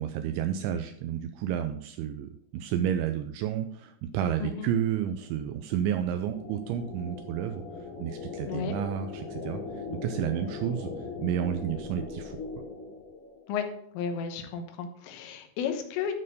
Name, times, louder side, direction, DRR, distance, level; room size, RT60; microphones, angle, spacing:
voice 1, 0.0-7.6 8.0-10.9 11.2-12.4, right 9 dB, 85° right, 8 dB, 2.7 m, -31 dB
sound 1, 4.8-13.7, left 5 dB, 65° left, 2.2 m, -41 dB
sound 2, 6.3-12.1, left 2 dB, 5° left, 1.9 m, -44 dB
voice 2, 8.5-8.8 13.5-13.7 14.0-16.1, left 7 dB, 85° left, 6 dB, 3.6 m, -33 dB
12.5 x 4.5 x 5.1 m, 0.68 s
omnidirectional pair, 5.8 m